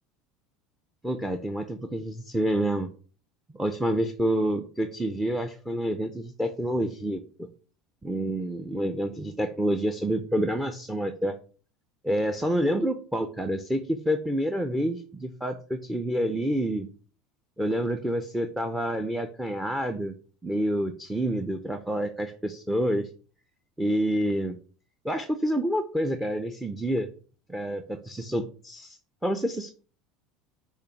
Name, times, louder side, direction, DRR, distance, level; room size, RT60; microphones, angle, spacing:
voice 1, 1.0-2.9 3.5-7.5 8.0-11.4 12.0-16.9 17.6-20.1 20.4-23.1 23.8-24.6 25.0-27.1 27.5-29.7, right 1 dB, 5° right, 8 dB, 0.6 m, -28 dB
6.6 x 3.0 x 5.8 m, 0.39 s
supercardioid pair, 120°, 0 cm